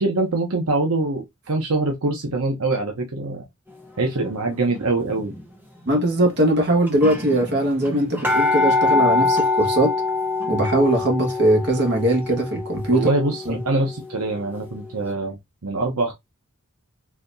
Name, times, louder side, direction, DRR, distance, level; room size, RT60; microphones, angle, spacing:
voice 1, 0.0-3.4 4.0-5.3 12.9-16.1, right 2 dB, 85° right, 0.8 m, -24 dB
sound 1, 5.1-5.4 6.3-6.4 6.6-6.7 6.9-14.5 14.9-15.0, left 3 dB, 10° right, 0.9 m, -24 dB
voice 2, 5.8-9.9 10.5-13.1 13.4-13.6, right 1 dB, 50° right, 1.5 m, -20 dB
4.1 x 2.9 x 2.6 m
head